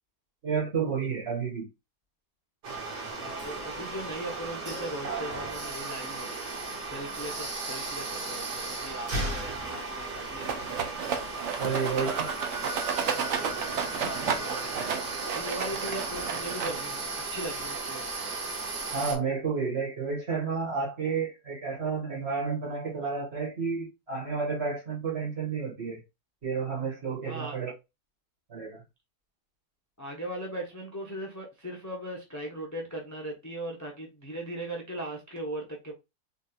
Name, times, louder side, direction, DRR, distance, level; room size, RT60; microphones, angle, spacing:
voice 1, 0.4-1.7 11.6-12.3 18.9-26.0 26.4-27.7 28.5-28.8, right 5 dB, 40° right, 1.8 m, -31 dB
sound 1, 2.6-19.2, right 3 dB, 85° right, 2.1 m, -35 dB
voice 2, 3.1-6.3 6.8-10.7 11.9-13.5 14.0-15.0 15.3-18.0 27.2-27.6 30.0-35.9, right 1 dB, 15° left, 0.6 m, -39 dB
Rattle, 10.4-17.1, right 6 dB, 60° right, 0.8 m, -32 dB
3.9 x 3.7 x 2.4 m
omnidirectional pair, 1.8 m